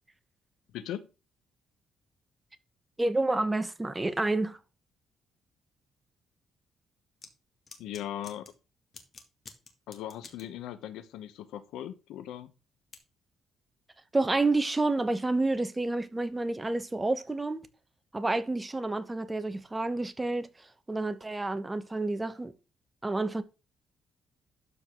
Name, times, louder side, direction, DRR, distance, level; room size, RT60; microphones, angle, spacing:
voice 1, 0.7-1.1 7.8-8.5 9.9-12.5, left 11 dB, 90° left, 0.9 m, -39 dB
voice 2, 3.0-4.6 14.1-17.6 18.1-22.5 23.0-23.4, right 2 dB, 15° right, 1.1 m, -29 dB
sound 1, 7.2-7.3 7.7-8.5 8.9-10.5 12.9-13.0, left 4 dB, 45° left, 2.1 m, -48 dB
12.5 x 4.8 x 3.7 m
cardioid pair, 90°, 0 cm